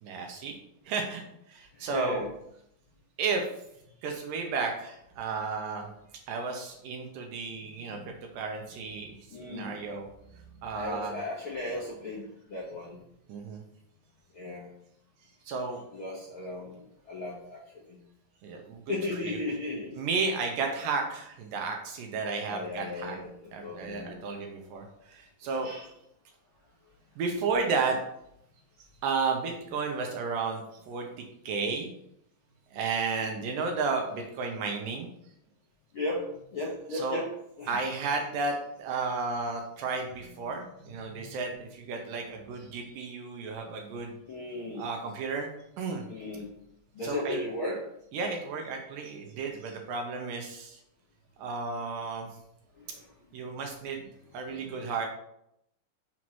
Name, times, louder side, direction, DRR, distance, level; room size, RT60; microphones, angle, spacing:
voice 1, 0.0-0.6 0.9-1.2 1.5-2.2 3.2-3.5 4.0-5.9 6.3-10.1 10.6-11.2 13.3-13.6 15.5-15.8 18.4-18.8 19.2-19.4 20.0-23.2 23.5-25.7 27.2-28.0 29.0-31.9 32.7-35.1 36.9-37.2 37.7-44.1 44.8-45.5 45.8-46.0 47.0-47.4 48.1-50.8 51.4-52.3 53.3-54.1 54.3-55.1, right 4 dB, 75° right, 2 dB, 2.2 m, -33 dB
voice 2, 1.7-2.3 7.7-8.0 9.3-10.0 10.3-13.0 14.3-14.7 15.9-17.6 17.9-18.0 18.9-19.9 22.5-24.4 25.4-25.9 33.2-33.4 35.9-37.8 40.4-40.5 40.8-41.6 44.3-44.9 46.1-46.5 46.9-47.9 52.8-53.1 53.8-53.9 54.4-54.9, left 2 dB, 85° left, -4 dB, 1.1 m, -37 dB
6.2 x 5.6 x 3.0 m, 0.76 s
omnidirectional pair, 4.3 m